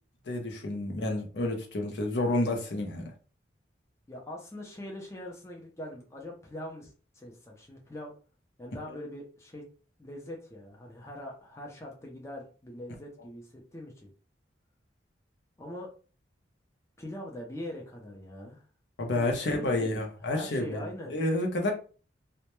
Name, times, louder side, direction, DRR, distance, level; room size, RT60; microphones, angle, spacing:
voice 1, 0.3-3.1 19.0-21.7, left 1 dB, 65° left, 2 dB, 0.6 m, -30 dB
voice 2, 4.1-8.1 8.6-9.6 10.0-14.1 15.6-15.9 17.0-18.6 19.1-19.9 20.2-21.1, left 1 dB, 15° left, -1 dB, 0.4 m, -42 dB
2.1 x 2.1 x 2.9 m, 0.37 s
head